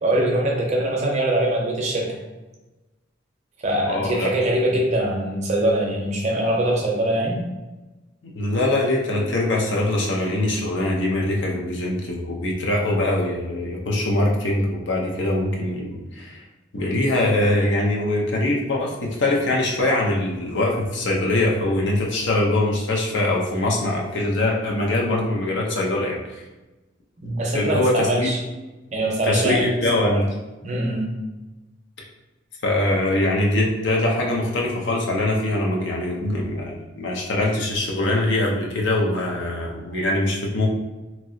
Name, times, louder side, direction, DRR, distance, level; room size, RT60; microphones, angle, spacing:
voice 1, 0.0-2.1 3.6-7.4 27.2-28.4 28.9-29.7 30.0-30.2 30.6-31.1, right 1 dB, 35° right, -2 dB, 0.6 m, -22 dB
voice 2, 3.9-4.4 8.2-16.4 16.7-26.4 27.5-28.3 29.3-30.2 32.6-40.7, left 1 dB, 65° left, -2 dB, 0.6 m, -23 dB
3.0 x 2.7 x 2.7 m, 1.1 s
head